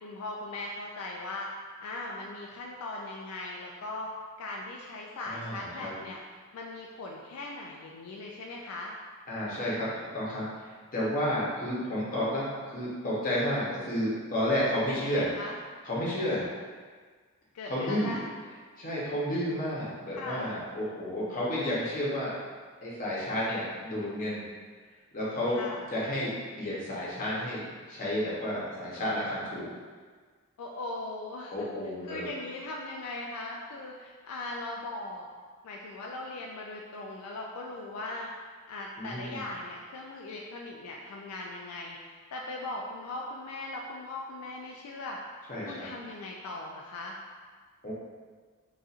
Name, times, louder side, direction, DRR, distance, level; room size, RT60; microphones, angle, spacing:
voice 1, 0.0-1.5 1.8-4.1 4.4-6.2 6.5-8.9 14.9-15.5 17.5-18.2 20.1-20.5 25.5-25.9 30.6-31.7 32.0-35.3 35.6-38.3 38.7-45.2 45.7-47.2, left 2 dB, 75° left, -1 dB, 0.3 m, -39 dB
voice 2, 5.3-5.9 9.3-9.9 10.1-15.3 15.8-16.5 17.7-18.2 18.8-22.4 22.8-24.4 25.1-25.6 25.9-29.7 31.5-32.3 39.0-39.4 45.5-45.9 47.8-47.9, left 1 dB, 40° left, -7 dB, 0.9 m, -31 dB
4.1 x 2.4 x 2.4 m, 1.5 s
head